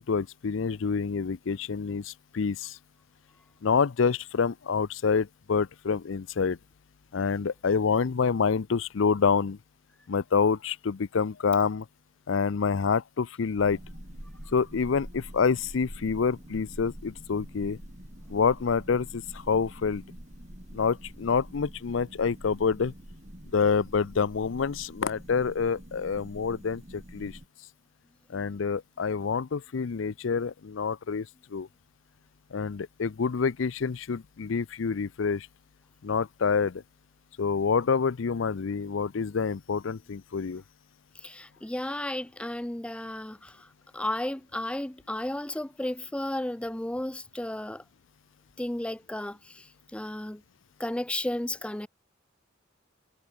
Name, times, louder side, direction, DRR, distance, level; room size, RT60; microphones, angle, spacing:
voice 1, 0.0-2.8 3.6-6.6 7.1-9.6 10.1-11.9 12.3-13.8 14.5-17.8 18.3-20.0 20.7-22.9 23.5-27.4 28.3-31.7 32.5-35.5 36.0-36.8 37.4-40.6, left 5 dB, 75° left, 0.5 m, -27 dB
sound 1, 13.6-27.5, equal, 35° right, 3.8 m, -46 dB
voice 2, 41.1-47.8 48.6-50.4 50.8-51.9, left 1 dB, 5° left, 0.4 m, -33 dB
head